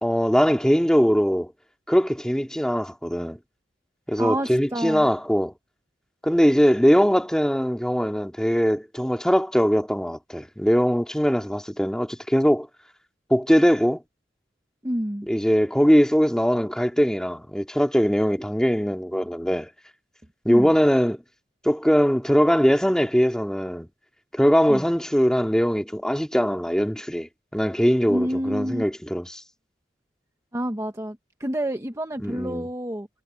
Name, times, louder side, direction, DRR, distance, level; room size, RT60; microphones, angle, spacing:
voice 1, 0.0-1.5 1.9-3.4 4.1-5.5 6.2-12.7 13.3-14.0 15.3-19.7 20.4-21.2 21.6-23.9 24.3-29.4 32.2-32.7, equal, 5° left, 2.4 m, -21 dB
voice 2, 4.2-5.1 14.8-15.3 20.5-20.7 24.7-24.8 28.1-28.8 30.5-33.1, right 1 dB, 20° right, 1.2 m, -28 dB
head